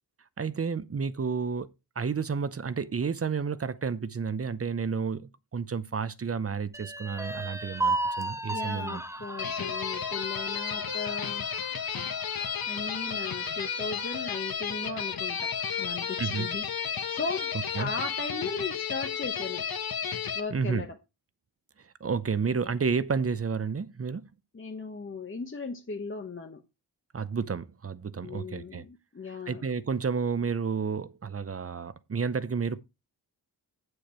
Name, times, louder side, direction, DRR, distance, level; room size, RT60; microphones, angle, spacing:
voice 1, 0.4-1.7 2.0-9.0 16.2-16.5 17.8-17.9 20.5-20.9 22.0-24.2 27.1-28.8 29.5-32.8, right 5 dB, 35° right, 0.7 m, -31 dB
sound 1, 6.7-14.4 14.8-14.9 15.3-16.0, right 2 dB, 5° right, 1.1 m, -36 dB
voice 2, 8.5-11.5 12.7-19.7 20.3-21.0 24.5-26.6 28.2-29.6, left 4 dB, 30° left, 1.0 m, -37 dB
sound 2, 9.4-20.4, left 7 dB, 65° left, 1.2 m, -33 dB
8.6 x 7.9 x 4.4 m
wide cardioid pair, 110°, 40 cm